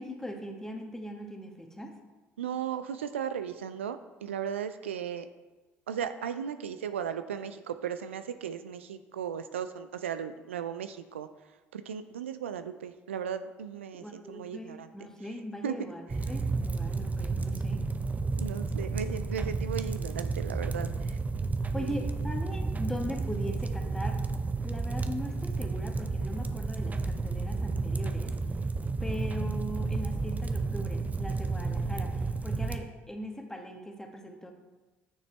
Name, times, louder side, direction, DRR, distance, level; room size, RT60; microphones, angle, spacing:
voice 1, 0.0-1.9 14.0-17.8 21.7-24.2 24.6-28.3 29.0-34.5, equal, 10° left, 2 dB, 1.6 m, -40 dB
voice 2, 2.4-5.3 5.9-11.3 11.7-14.9 15.6-15.7 18.4-21.2 21.8-22.0, right 8 dB, 85° right, 10 dB, 0.3 m, -36 dB
sound 1, 16.1-32.8, right 3 dB, 25° right, 0.6 m, -32 dB
9.7 x 6.6 x 3.3 m, 1.2 s
hypercardioid pair, 55°, 6 cm